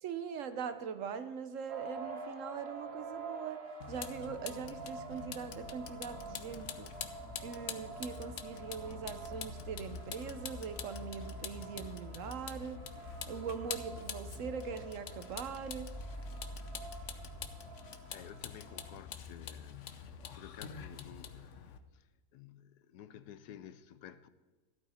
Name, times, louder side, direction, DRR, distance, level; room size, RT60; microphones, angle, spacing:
voice 1, 0.0-6.9 7.4-12.8 13.3-15.9, right 6 dB, 60° right, 1.0 m, -42 dB
sound 1, 1.7-18.9, right 4 dB, 90° right, 2.0 m, -49 dB
Vehicle, 3.8-21.8, left 7 dB, 55° left, 1.0 m, -46 dB
sound 2, 5.6-17.5, left 1 dB, 15° left, 3.7 m, -50 dB
voice 2, 17.8-21.6 21.9-24.3, left 10 dB, 90° left, 1.3 m, -53 dB
14.0 x 12.5 x 4.3 m
omnidirectional pair, 1.7 m